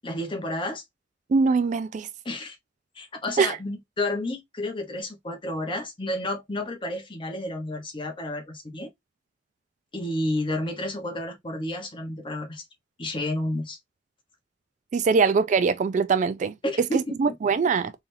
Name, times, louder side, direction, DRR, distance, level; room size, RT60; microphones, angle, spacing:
voice 1, 0.0-0.8 2.2-2.6 3.0-8.9 9.9-12.6 13.0-13.8 16.6-17.2, left 1 dB, 30° left, 1.0 m, -31 dB
voice 2, 1.3-2.1 3.4-3.6 14.9-16.5 16.9-17.9, right 5 dB, 40° right, 0.3 m, -22 dB
3.8 x 3.4 x 2.6 m
head